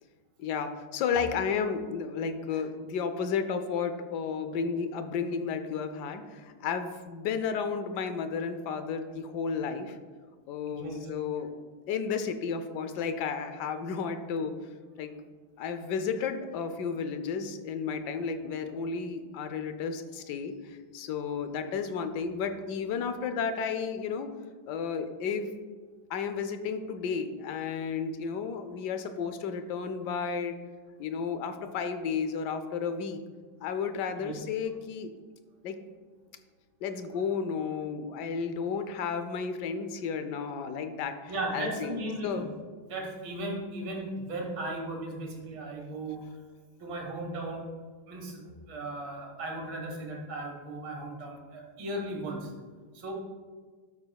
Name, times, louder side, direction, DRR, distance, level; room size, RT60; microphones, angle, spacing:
voice 1, 0.4-10.0 10.5-11.5 11.9-14.5 15.0-15.1 15.6-24.3 24.7-25.5 26.1-30.6 31.0-33.2 33.6-35.1 35.6-35.8 36.8-42.0 42.2-42.5, left 6 dB, 70° left, 9 dB, 1.1 m, -32 dB
voice 2, 10.7-11.0 34.2-34.4 41.3-42.5 42.9-46.3 46.8-47.7 48.1-52.5 52.9-53.1, right 1 dB, 75° right, 1 dB, 2.2 m, -36 dB
12.5 x 6.5 x 2.3 m, 1.5 s
omnidirectional pair, 2.2 m